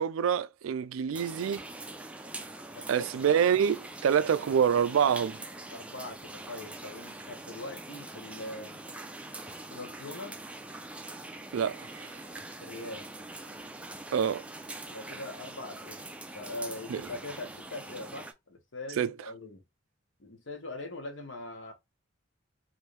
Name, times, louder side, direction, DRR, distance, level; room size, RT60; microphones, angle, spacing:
voice 1, 0.0-1.6 2.9-5.4 11.5-12.1 14.1-14.4 16.9-17.0 19.0-19.1, right 8 dB, 85° right, 0.3 m, -26 dB
sound 1, 1.1-18.3, right 2 dB, 5° right, 0.3 m, -44 dB
voice 2, 5.7-8.8 9.7-10.4 12.6-13.0 14.9-16.0 16.3-19.6 20.2-21.7, left 2 dB, 65° left, 1.0 m, -42 dB
3.1 x 2.6 x 3.2 m
head